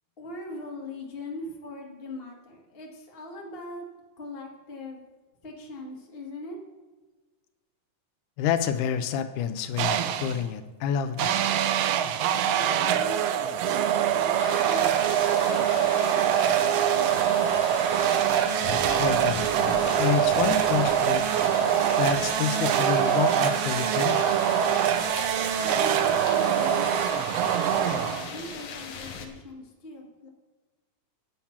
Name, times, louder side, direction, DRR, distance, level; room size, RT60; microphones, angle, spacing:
voice 1, 0.2-3.9 4.2-5.0 5.4-6.6 12.5-17.5 25.6-26.9 27.4-30.3, left 1 dB, 25° left, -1 dB, 1.5 m, -41 dB
voice 2, 8.4-11.4 19.0-19.4 20.0-21.6 22.0-24.3, left 8 dB, 90° left, 10 dB, 2.2 m, -28 dB
sound 1, 9.8-10.4 11.2-28.5, right 9 dB, 85° right, 1.4 m, -24 dB
sound 2, 14.4-29.3, left 5 dB, 65° left, 1.4 m, -39 dB
9.2 x 7.3 x 5.9 m, 1.3 s
omnidirectional pair, 3.6 m